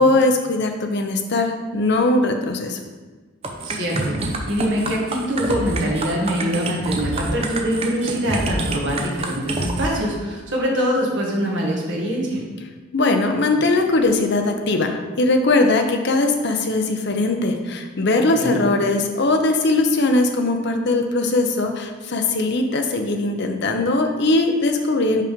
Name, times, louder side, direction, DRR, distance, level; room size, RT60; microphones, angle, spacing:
voice 1, 0.0-2.8 12.9-25.2, left 2 dB, 55° left, 4 dB, 0.7 m, -20 dB
sound 1, 3.4-9.9, right 2 dB, 30° right, 0.7 m, -27 dB
voice 2, 3.6-12.4 18.4-18.6, equal, 60° right, -2 dB, 1.6 m, -24 dB
5.7 x 5.0 x 5.1 m, 1.3 s
head